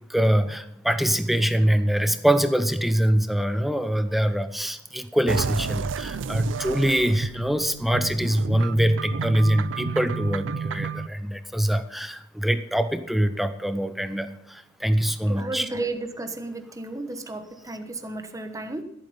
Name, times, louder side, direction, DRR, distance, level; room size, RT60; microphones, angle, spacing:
voice 1, 0.1-15.7, right 1 dB, ahead, 10 dB, 0.8 m, -24 dB
sound 1, 5.3-11.1, right 5 dB, 75° right, 0.4 m, -31 dB
voice 2, 15.3-18.8, right 2 dB, 20° right, 7 dB, 1.1 m, -33 dB
14.5 x 8.8 x 5.5 m, 0.81 s
head